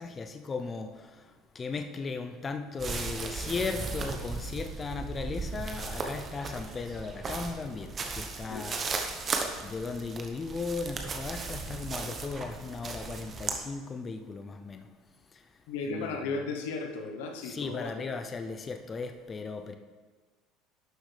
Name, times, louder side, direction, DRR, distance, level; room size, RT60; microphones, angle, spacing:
voice 1, 0.0-14.9 15.3-15.6 15.9-16.3 17.4-19.8, left 4 dB, 30° left, 7 dB, 0.6 m, -37 dB
sound 1, 2.8-13.6, right 4 dB, 35° right, 1.1 m, -36 dB
voice 2, 15.7-18.1, left 3 dB, 80° left, 4 dB, 1.0 m, -35 dB
11.5 x 6.2 x 3.4 m, 1.4 s
supercardioid pair, 85°, 0 cm